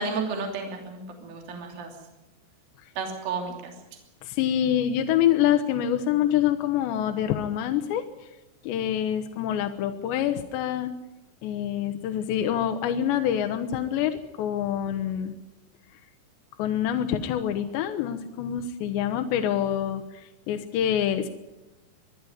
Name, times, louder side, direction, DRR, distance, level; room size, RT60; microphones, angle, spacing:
voice 1, 0.0-1.9 3.0-3.7, right 4 dB, 55° right, 2 dB, 4.5 m, -32 dB
voice 2, 4.2-8.1 8.6-10.9 11.4-15.4 16.6-21.3, left 10 dB, 75° left, 6 dB, 3.1 m, -26 dB
23.5 x 12.0 x 9.6 m, 0.99 s
omnidirectional pair, 5.3 m